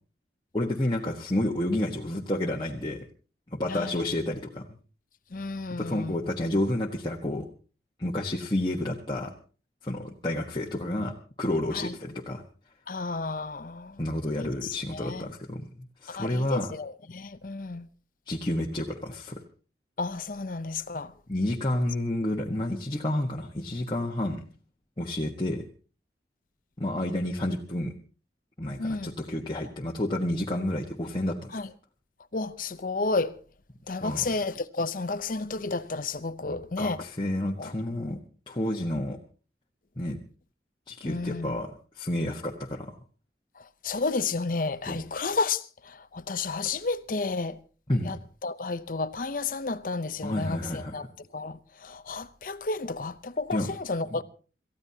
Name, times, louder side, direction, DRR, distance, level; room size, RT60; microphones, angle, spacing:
voice 1, 0.5-3.0 3.5-4.6 5.7-7.5 8.0-9.3 9.8-11.1 11.4-12.4 14.0-15.6 16.0-16.7 18.3-19.4 21.3-24.4 25.0-25.6 26.8-27.9 28.6-31.6 34.0-34.3 36.4-38.2 38.5-39.2 40.0-40.2 40.9-41.7 42.0-42.9 44.9-45.0 47.9-48.1 50.2-51.0 53.5-53.7 54.1-54.2, left 1 dB, 25° left, 1.3 m, -30 dB
voice 2, 3.7-4.0 5.3-6.2 11.7-11.9 12.9-14.0 14.4-15.3 16.1-17.9 20.0-21.1 28.8-29.1 31.5-31.7 32.3-33.4 33.9-37.0 37.6-37.7 41.0-41.6 43.6-47.6 48.0-48.2 48.4-51.0 51.3-54.2, left 3 dB, 50° left, 0.7 m, -32 dB
27.5 x 14.5 x 2.8 m
head